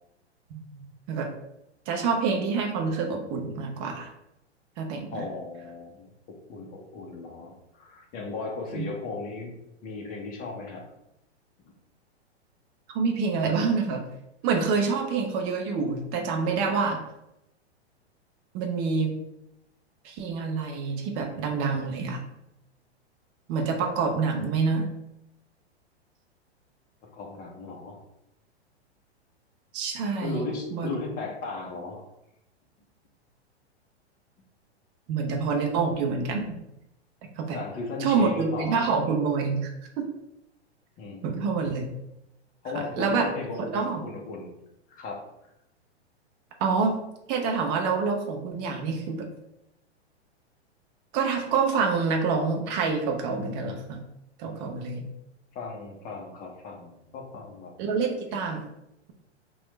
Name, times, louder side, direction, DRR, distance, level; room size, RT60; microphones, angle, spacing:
voice 1, 1.9-4.1 4.8-5.1 8.8-8.9 12.9-14.0 14.4-17.0 18.5-19.2 20.0-22.2 23.5-24.9 29.7-30.4 30.7-30.9 35.1-36.5 37.4-37.6 38.0-39.6 40.0-40.1 41.2-41.8 42.7-43.3 43.7-44.0 46.6-47.0 47.3-49.3 51.1-54.0 54.4-55.1 57.8-58.6, right 5 dB, 30° right, 2 dB, 0.4 m, -27 dB
voice 2, 5.1-10.8 27.1-28.0 30.2-32.0 37.5-38.8 41.0-41.6 42.6-44.5 44.9-45.3 55.5-57.7, left 3 dB, 25° left, 1 dB, 0.6 m, -36 dB
3.0 x 2.2 x 3.0 m, 0.86 s
hypercardioid pair, 110°, 34 cm